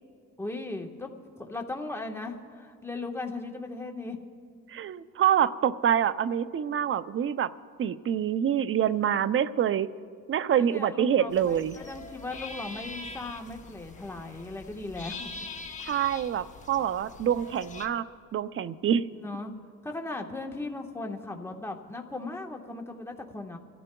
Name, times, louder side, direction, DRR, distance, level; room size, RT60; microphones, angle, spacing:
voice 1, 0.4-1.1 1.4-4.2 10.6-15.3 19.2-19.5 19.8-23.6, left 2 dB, 10° left, 2 dB, 1.3 m, -37 dB
voice 2, 4.7-7.5 7.8-9.9 10.3-11.8 15.8-18.1 18.3-19.1, right 9 dB, 45° right, 15 dB, 0.5 m, -26 dB
sound 1, 11.3-17.9, left 3 dB, 25° left, 1.1 m, -43 dB
27.5 x 14.0 x 2.3 m, 2.3 s
cardioid pair, 90°, 30 cm